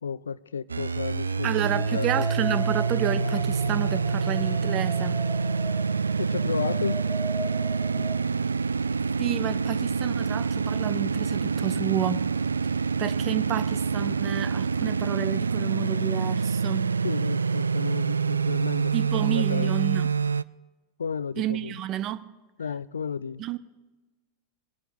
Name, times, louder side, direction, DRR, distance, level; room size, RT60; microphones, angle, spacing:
voice 1, 0.0-2.6 6.2-7.1 7.9-8.1 17.0-19.7 21.0-21.8 22.6-23.4, left 6 dB, 70° left, 0.4 m, -33 dB
sound 1, 0.7-20.4, right 5 dB, 75° right, 0.3 m, -26 dB
voice 2, 1.4-5.2 9.2-12.2 13.0-16.9 18.9-20.1 21.4-22.3 23.4-23.6, right 12 dB, 35° right, 0.8 m, -30 dB
sound 2, 1.6-8.2, left 1 dB, 15° right, 3.9 m, -38 dB
21.5 x 11.0 x 3.9 m
figure-of-eight pair, 90°, 0 cm